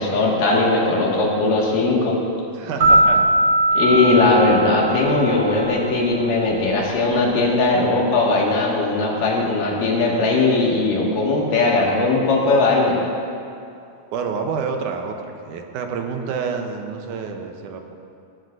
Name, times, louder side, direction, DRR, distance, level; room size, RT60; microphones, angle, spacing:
voice 1, 0.0-2.2 3.8-13.0, left 3 dB, 90° left, -3 dB, 3.6 m, -19 dB
voice 2, 2.5-3.3 14.1-15.2 15.5-17.9, right 5 dB, 75° right, 4 dB, 2.3 m, -28 dB
sound 1, 2.8-5.6, right 1 dB, 45° right, 2.3 m, -18 dB
19.5 x 14.0 x 2.6 m, 2.5 s
omnidirectional pair, 3.7 m